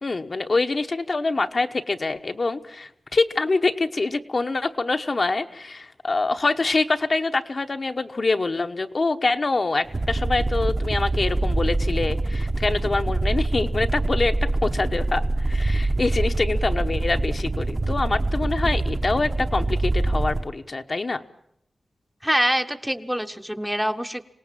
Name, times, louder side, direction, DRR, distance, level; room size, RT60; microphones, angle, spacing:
voice 1, 0.0-21.2, left 3 dB, 45° left, 6 dB, 1.0 m, -25 dB
sound 1, 9.8-20.5, right 2 dB, 35° right, 1.0 m, -24 dB
voice 2, 22.2-24.3, equal, 5° right, 7 dB, 0.9 m, -25 dB
26.0 x 18.5 x 7.5 m, 0.73 s
wide cardioid pair, 125°, 0 cm